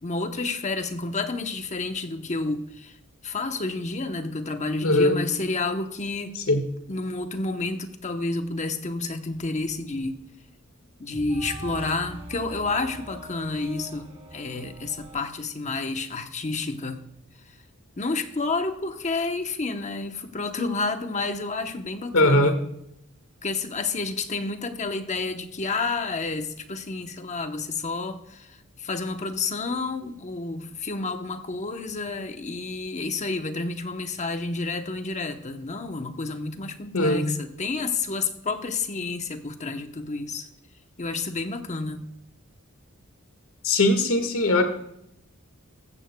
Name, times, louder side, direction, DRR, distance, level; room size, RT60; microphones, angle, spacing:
voice 1, 0.0-2.9 3.2-6.4 6.9-10.2 11.0-17.1 18.0-22.6 23.4-40.5 41.0-42.0, left 3 dB, 35° left, 7 dB, 0.9 m, -30 dB
voice 2, 4.8-5.2 6.5-6.6 22.1-22.6 36.9-37.3 43.6-44.6, left 1 dB, 70° left, 7 dB, 1.7 m, -20 dB
sound 1, 9.3-15.2, right 1 dB, 30° right, 3.0 m, -43 dB
15.0 x 14.5 x 2.3 m, 0.78 s
head